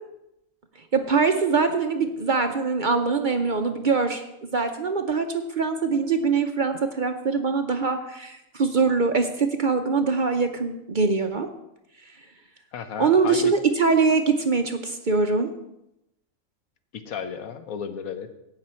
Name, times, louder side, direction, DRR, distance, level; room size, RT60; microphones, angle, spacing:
voice 1, 0.9-11.5 13.0-15.5, right 4 dB, 45° right, 6 dB, 0.7 m, -23 dB
voice 2, 12.7-13.5 16.9-18.3, left 7 dB, 90° left, 9 dB, 1.3 m, -33 dB
16.5 x 6.0 x 4.3 m, 0.86 s
omnidirectional pair, 1.4 m